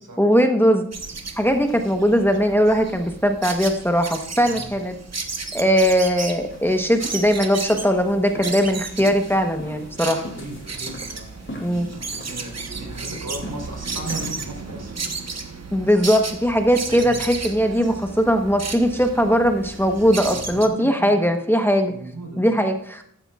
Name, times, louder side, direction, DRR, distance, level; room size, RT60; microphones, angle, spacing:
voice 1, 0.2-0.8 1.4-4.9 5.5-10.2 11.6-11.9 15.7-21.9 22.4-23.0, equal, 5° left, 4 dB, 1.1 m, -19 dB
sound 1, 0.9-20.7, right 4 dB, 55° right, 1.1 m, -34 dB
voice 2, 4.4-4.7 10.0-15.1 16.8-17.2 20.3-21.2 21.9-22.5, right 2 dB, 75° right, 1 dB, 3.9 m, -37 dB
sound 2, 6.5-14.9, equal, 40° left, 2.6 m, -40 dB
14.0 x 11.5 x 2.4 m, 0.65 s
wide cardioid pair, 100°, 31 cm